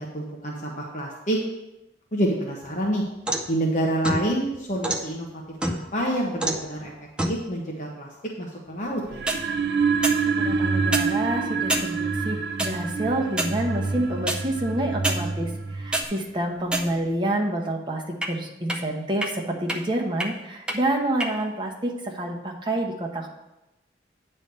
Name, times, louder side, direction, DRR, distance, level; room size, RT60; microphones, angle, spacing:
voice 1, 0.0-1.4 2.1-3.0 3.5-6.9 7.3-8.1 8.4-9.2, right 1 dB, 40° left, -2 dB, 1.0 m, -27 dB
sound 1, 2.6-3.5 4.0-5.0 5.6-6.0 6.4-6.7 7.2-7.4 9.1-9.4 10.0-10.2 10.8-11.1 11.7-11.9 12.6-12.7 13.3-13.6 14.3-14.4 15.0-15.2 15.7-16.1 16.7-17.2 18.2-18.3 18.7-18.8 19.2-19.3 19.7-19.8 20.2-20.3 20.7-20.8 21.2-21.3, right 1 dB, 5° right, 0.5 m, -26 dB
sound 2, 9.1-16.0, right 5 dB, 55° right, 0.4 m, -26 dB
voice 2, 10.3-15.5 15.7-18.0 18.3-23.3, right 1 dB, 25° right, 0 dB, 1.0 m, -28 dB
9.1 x 3.3 x 6.8 m, 0.95 s
head